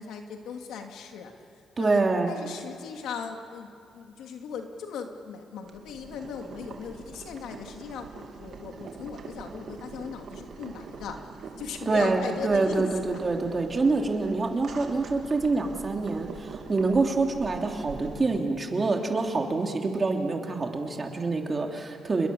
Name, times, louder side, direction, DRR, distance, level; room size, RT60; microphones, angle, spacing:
voice 1, 0.0-1.3 1.8-11.2 11.6-13.2, left 6 dB, 80° left, 4 dB, 2.5 m, -38 dB
voice 2, 1.8-2.3 11.9-22.3, right 3 dB, 30° right, 2 dB, 3.2 m, -26 dB
Boiling, 5.6-18.4, right 5 dB, 60° right, 2.5 m, -43 dB
28.0 x 22.0 x 7.1 m, 2.5 s
cardioid pair, 90°, 0 cm